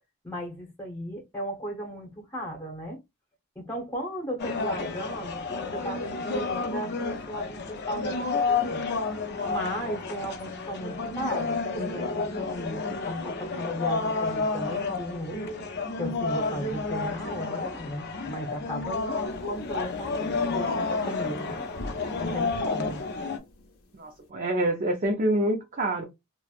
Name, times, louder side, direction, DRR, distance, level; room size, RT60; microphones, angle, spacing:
voice 1, 0.2-3.0 3.6-8.9 9.4-15.5 16.0-23.0, equal, 10° left, 0.9 m, -36 dB
sound 1, 4.4-23.4, left 4 dB, 50° left, 0.5 m, -31 dB
sound 2, 19.3-20.7 21.7-24.2, left 1 dB, 85° left, 0.8 m, -42 dB
voice 2, 23.9-26.0, right 1 dB, 40° right, 0.5 m, -26 dB
3.1 x 2.1 x 2.4 m
head